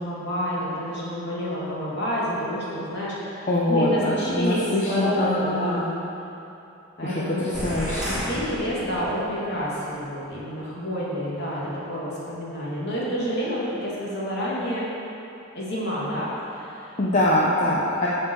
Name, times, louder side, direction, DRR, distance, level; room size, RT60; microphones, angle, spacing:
voice 1, 0.0-5.8 7.0-7.4 8.0-14.9 15.5-17.5, equal, 55° left, -6 dB, 2.6 m, -29 dB
voice 2, 3.5-5.9 7.0-8.0 17.0-18.1, left 1 dB, 40° left, -5 dB, 0.9 m, -23 dB
sound 1, 7.5-9.4, equal, 5° right, 2.0 m, -31 dB
14.5 x 5.6 x 4.7 m, 2.9 s
head